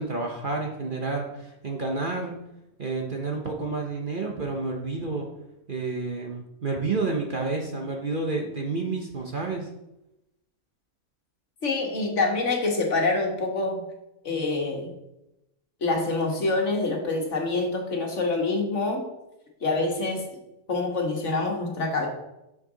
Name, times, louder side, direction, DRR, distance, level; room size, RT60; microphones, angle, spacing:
voice 1, 0.0-2.4 2.8-5.3 5.7-9.7, right 3 dB, 40° right, 1 dB, 1.0 m, -30 dB
voice 2, 11.6-13.8 14.2-14.9 15.8-19.0 19.6-20.2 20.7-22.1, left 3 dB, 55° left, 1 dB, 1.7 m, -26 dB
6.6 x 6.5 x 5.0 m, 0.90 s
omnidirectional pair, 1.5 m